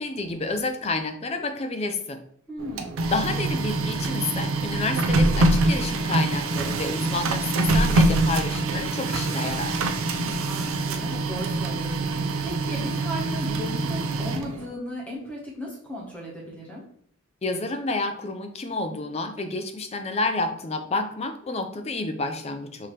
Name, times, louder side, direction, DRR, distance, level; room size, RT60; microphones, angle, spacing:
voice 1, 0.0-2.2 3.1-9.8 17.4-22.9, left 3 dB, 30° left, 7 dB, 0.4 m, -29 dB
voice 2, 2.5-3.0 10.2-16.8, equal, 5° left, -4 dB, 1.1 m, -36 dB
Printer, 2.6-14.7, right 2 dB, 65° right, 0.5 m, -25 dB
5.7 x 2.8 x 3.2 m, 0.64 s
head